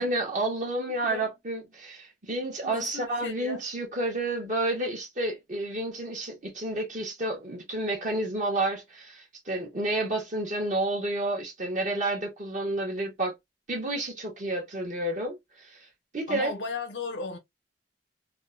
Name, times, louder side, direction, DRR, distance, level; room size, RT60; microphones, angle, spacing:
voice 1, 0.0-13.3 13.7-15.9 16.1-16.5, right 2 dB, 45° right, 1.0 m, -30 dB
voice 2, 1.0-1.3 2.6-3.6 16.3-17.4, left 4 dB, 85° left, 0.8 m, -36 dB
3.4 x 2.1 x 2.4 m
head